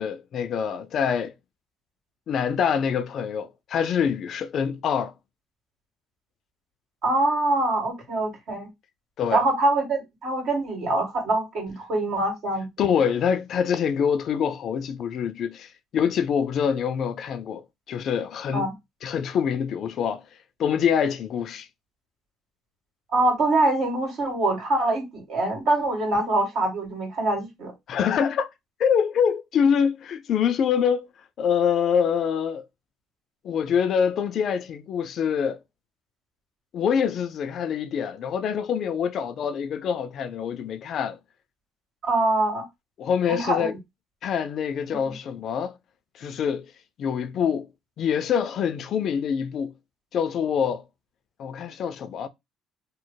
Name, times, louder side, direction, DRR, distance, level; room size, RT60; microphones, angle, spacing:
voice 1, 0.0-1.3 2.3-5.1 9.2-9.4 12.8-17.6 17.9-18.7 19.0-20.2 20.6-21.7 27.9-28.5 28.8-31.1 31.4-32.6 33.4-35.6 36.7-41.2 43.0-43.7 44.2-45.7 46.2-46.7 47.0-47.7 48.0-49.7 50.1-50.8 51.4-52.3, left 7 dB, 60° left, 0.4 m, -25 dB
voice 2, 7.0-8.7 9.3-12.7 18.5-18.7 23.1-27.7 42.0-42.6 43.3-43.8, right 2 dB, 65° right, 1.8 m, -24 dB
3.1 x 2.0 x 3.9 m
supercardioid pair, 80°, 0 cm